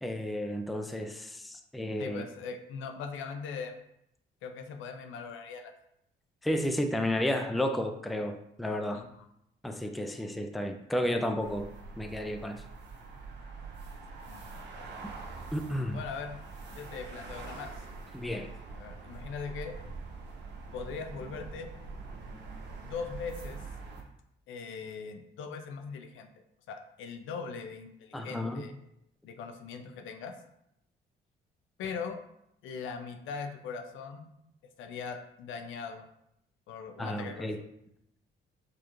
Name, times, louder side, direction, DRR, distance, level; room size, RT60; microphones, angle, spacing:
voice 1, 0.0-2.2 6.4-9.0 9.6-11.7 12.0-12.6 15.5-16.0 18.1-18.5 28.1-28.6 37.0-37.6, left 1 dB, ahead, 6 dB, 0.3 m, -32 dB
voice 2, 2.0-3.7 4.4-5.7 8.9-9.2 14.3-14.6 15.9-16.4 16.7-17.7 18.7-19.8 20.7-21.7 22.8-23.6 24.5-26.3 26.7-28.7 29.2-30.3 31.8-32.2 32.6-34.3 34.8-36.1 36.7-37.5, left 5 dB, 80° left, 6 dB, 0.5 m, -40 dB
sound 1, 11.4-24.0, right 4 dB, 60° right, 1.0 m, -44 dB
4.9 x 2.4 x 3.0 m, 0.78 s
cardioid pair, 90°, 20 cm